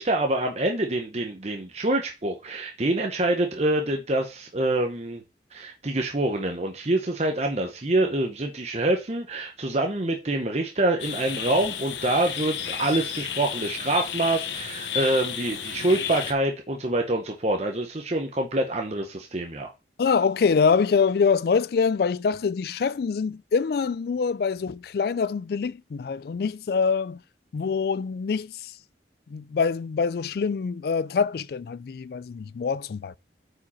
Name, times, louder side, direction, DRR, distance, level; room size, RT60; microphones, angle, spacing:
voice 1, 0.0-5.2 5.5-19.7, right 1 dB, 35° right, 0.9 m, -26 dB
sound 1, 11.0-16.3, left 8 dB, 85° left, 1.1 m, -32 dB
voice 2, 20.0-27.2 27.5-28.8 29.3-33.2, left 5 dB, 55° left, 0.3 m, -25 dB
8.5 x 5.0 x 4.3 m
head